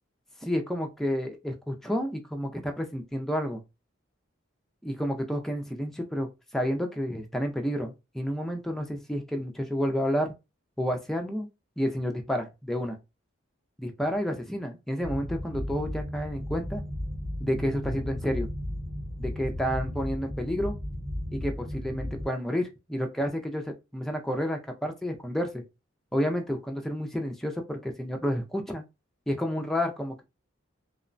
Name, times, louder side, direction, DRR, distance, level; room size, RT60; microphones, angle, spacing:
voice 1, 0.4-3.6 4.8-6.3 6.5-10.3 10.8-11.5 11.8-13.0 13.8-16.8 17.4-18.5 19.2-20.8 21.3-25.6 26.1-28.8 29.3-30.2, equal, ahead, 0.3 m, -30 dB
sound 1, 15.0-22.3, equal, 90° right, 1.2 m, -35 dB
2.9 x 2.1 x 2.5 m
head